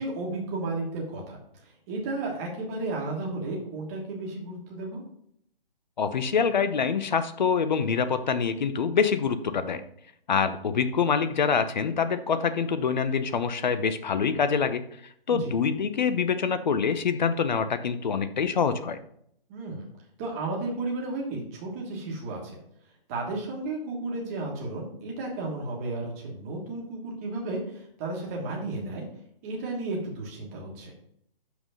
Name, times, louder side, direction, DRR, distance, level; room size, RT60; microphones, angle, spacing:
voice 1, 0.0-1.4 1.9-5.0 15.3-15.5 19.5-19.8 20.2-22.6 23.1-29.0 29.4-30.9, right 2 dB, 15° right, -1 dB, 1.4 m, -33 dB
voice 2, 6.0-9.8 10.3-14.8 15.3-19.0, left 6 dB, 50° left, 12 dB, 0.8 m, -25 dB
5.8 x 5.8 x 5.5 m, 0.69 s
hypercardioid pair, 170°, 29 cm